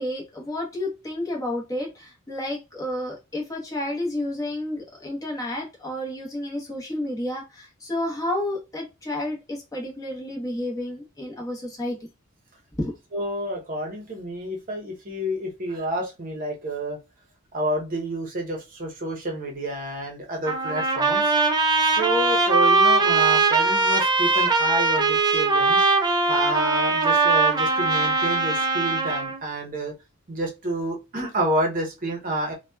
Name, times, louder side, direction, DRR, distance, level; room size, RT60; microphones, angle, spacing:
voice 1, 0.0-12.0 12.8-12.9, left 1 dB, 15° left, -2 dB, 0.9 m, -30 dB
voice 2, 13.1-17.0 17.5-21.3 21.8-29.9 30.3-32.5, right 1 dB, 40° right, 0 dB, 0.8 m, -29 dB
Trumpet, 20.5-29.4, right 3 dB, 20° right, 0.4 m, -21 dB
2.8 x 2.2 x 2.2 m, 0.26 s
head